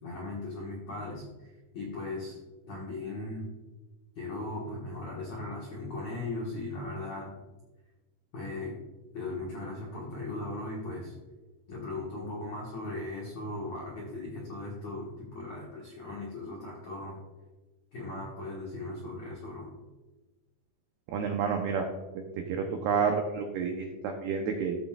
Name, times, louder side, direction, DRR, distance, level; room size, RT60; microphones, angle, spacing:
voice 1, 0.0-2.4 2.7-3.5 4.1-7.4 8.3-8.8 9.1-11.1 11.7-17.2 17.9-19.8, left 2 dB, 75° left, -4 dB, 1.6 m, -38 dB
voice 2, 21.1-21.9 22.2-24.8, right 6 dB, 90° right, 3 dB, 2.2 m, -30 dB
14.5 x 6.1 x 2.4 m, 1.2 s
omnidirectional pair, 5.7 m